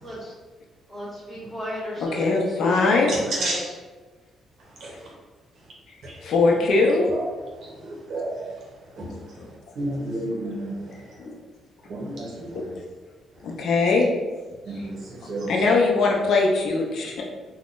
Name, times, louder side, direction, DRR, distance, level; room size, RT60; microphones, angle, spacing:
voice 1, 0.0-0.3 0.9-3.7, equal, 20° left, -8 dB, 1.2 m, -35 dB
voice 2, 2.1-3.1 6.2-7.1 9.4-9.5 11.2-11.3 12.5-12.6 13.4-14.1 15.5-17.2, left 3 dB, 65° left, -1 dB, 0.6 m, -21 dB
voice 3, 3.1-3.6 4.8-4.9 6.0-6.2 6.8-6.9 7.6-8.5 9.0-9.1 9.8-10.9 11.9-12.7 14.7-15.5, right 1 dB, 65° right, -4 dB, 0.8 m, -31 dB
3.5 x 2.2 x 2.5 m, 1.3 s
cardioid pair, 125°, 0 cm